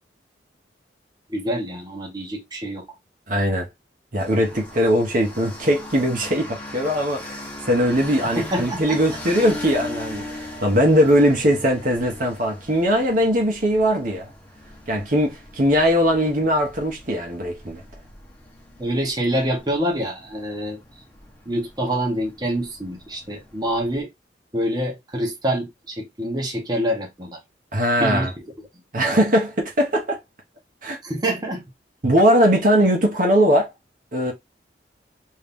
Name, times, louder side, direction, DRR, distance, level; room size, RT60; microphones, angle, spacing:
voice 1, 1.3-2.9 8.4-9.0 18.8-20.8 21.5-24.1 24.5-27.4 28.0-28.3 31.0-31.6, equal, 25° right, 1.0 m, -26 dB
voice 2, 3.3-3.7 4.1-14.3 14.9-17.8 27.7-28.3 28.9-30.2 30.8-31.0 32.0-33.7 34.1-34.3, equal, 50° right, 1.0 m, -20 dB
sound 1, 4.2-24.0, left 1 dB, 10° left, 1.0 m, -40 dB
3.2 x 2.7 x 3.5 m
head